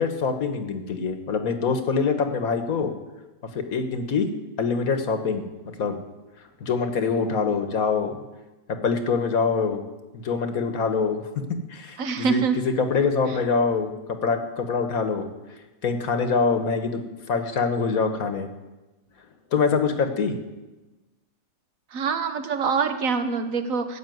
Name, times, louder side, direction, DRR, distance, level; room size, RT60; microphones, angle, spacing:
voice 1, 0.0-2.9 3.5-4.3 4.6-5.4 5.8-6.0 6.6-8.2 8.7-9.8 10.1-11.2 11.7-15.3 15.8-17.0 17.3-18.5 19.5-20.4, left 5 dB, 85° left, 7 dB, 1.7 m, -24 dB
voice 2, 12.0-12.6 21.9-24.0, right 5 dB, 75° right, 8 dB, 1.5 m, -25 dB
14.0 x 7.2 x 9.2 m, 1.1 s
omnidirectional pair, 1.4 m